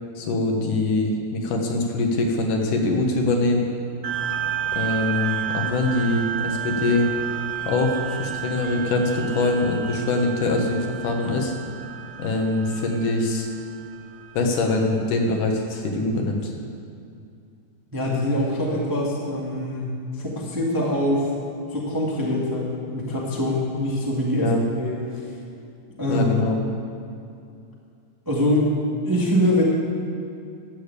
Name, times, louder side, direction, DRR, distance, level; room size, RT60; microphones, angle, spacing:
voice 1, 0.2-3.6 4.7-7.1 7.7-11.5 12.2-13.5 14.3-16.5 24.4-24.6 26.1-26.6, left 2 dB, 90° left, 2 dB, 2.9 m, -23 dB
sound 1, 4.0-14.9, right 9 dB, 60° right, 1.3 m, -31 dB
voice 2, 17.9-21.3 21.7-24.5 24.8-25.2 26.0-26.3 28.2-28.7 29.0-29.6, left 1 dB, 10° right, -4 dB, 0.9 m, -24 dB
12.5 x 6.9 x 8.2 m, 2.5 s
omnidirectional pair, 3.6 m